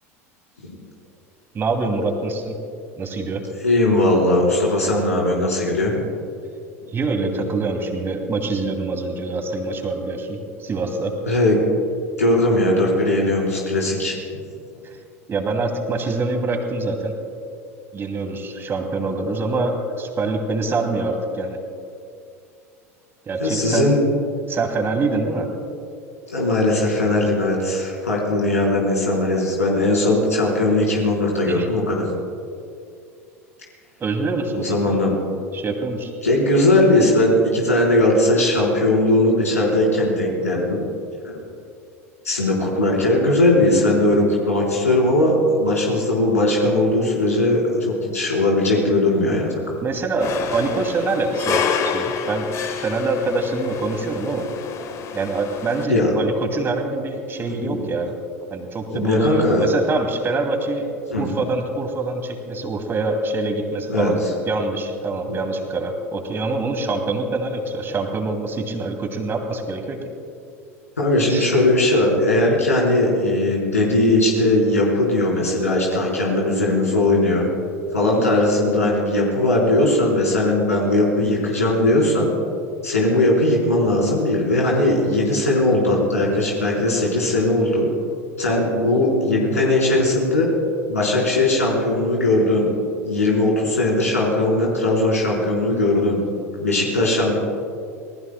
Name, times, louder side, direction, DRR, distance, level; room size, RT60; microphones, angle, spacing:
voice 1, 1.5-2.6 3.0-3.4 6.8-11.1 15.3-17.1 17.9-21.6 23.3-23.9 24.5-25.5 31.5-31.7 34.0-35.0 35.5-36.1 49.3-49.4 49.8-52.5 52.8-54.5 55.1-58.2 58.5-60.9 61.2-70.0 71.3-71.6, right 3 dB, 30° right, 4 dB, 2.5 m, -25 dB
voice 2, 3.6-6.0 11.3-11.6 12.2-14.1 23.4-24.0 26.3-32.0 34.6-35.2 36.2-40.8 41.2-41.4 42.2-49.8 55.9-56.1 57.5-57.7 58.9-59.7 61.1-61.2 63.9-64.1 65.3-65.4 71.0-77.5 77.9-82.3 82.8-87.9 88.4-90.5 90.9-92.7 93.0-96.2 96.6-97.4, left 1 dB, 85° left, -3 dB, 4.1 m, -19 dB
sound 1, 50.2-55.9, left 7 dB, 40° left, 1.3 m, -28 dB
26.5 x 19.0 x 2.2 m, 2.5 s
figure-of-eight pair, 80°, 8 cm